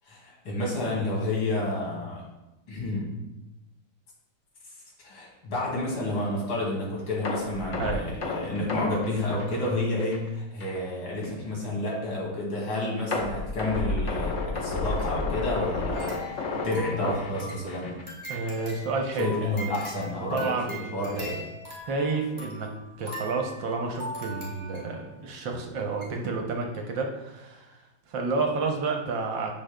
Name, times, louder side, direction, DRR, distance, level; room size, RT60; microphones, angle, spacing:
voice 1, 0.1-2.2 2.7-3.2 5.0-18.0 19.2-21.4, left 2 dB, 75° left, -4 dB, 3.0 m, -30 dB
sound 1, 7.2-10.3 10.6-10.8 11.2-11.3 13.1-18.0 18.3-18.5 18.9-19.0, left 3 dB, 45° left, 1.1 m, -31 dB
sound 2, 15.9-25.1 25.6-25.7 26.0-26.1, equal, 10° right, 2.0 m, -41 dB
voice 2, 18.3-19.4 20.2-21.2 21.9-22.7 23.0-27.8 28.1-29.5, right 3 dB, 70° right, 2 dB, 1.4 m, -30 dB
10.0 x 6.3 x 2.2 m, 1.0 s
omnidirectional pair, 2.3 m